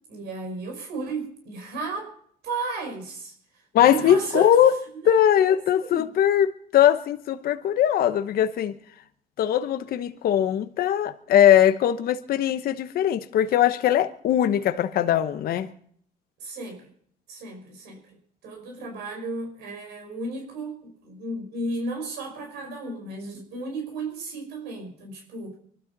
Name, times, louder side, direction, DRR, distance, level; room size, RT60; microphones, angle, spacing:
voice 1, 0.1-2.1 2.4-3.3 3.8-4.5 4.9-6.1 16.4-16.9 17.3-18.0 18.4-25.6, right 3 dB, 80° right, 5.6 m, -34 dB
voice 2, 3.7-4.8 5.0-8.7 9.4-15.7, left 10 dB, 60° left, 1.1 m, -20 dB
24.0 x 12.5 x 4.1 m
cardioid pair, 110°, 17 cm